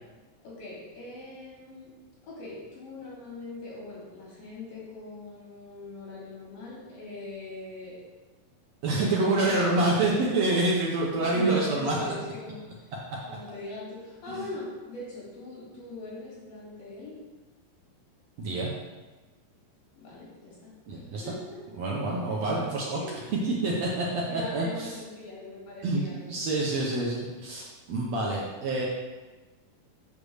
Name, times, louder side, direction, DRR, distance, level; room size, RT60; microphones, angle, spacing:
voice 1, 0.4-1.9 2.2-8.0 9.1-10.2 11.2-12.6 13.3-17.2 19.9-21.6 23.0-23.7 24.3-26.7, left 2 dB, 90° left, -7 dB, 4.8 m, -41 dB
voice 2, 8.8-12.0 14.3-14.5 18.4-18.7 20.9-21.2 21.8-23.0 23.4-24.9 25.8-28.9, right 2 dB, 65° right, -3 dB, 1.8 m, -27 dB
8.3 x 3.6 x 6.4 m, 1.2 s
omnidirectional pair, 4.0 m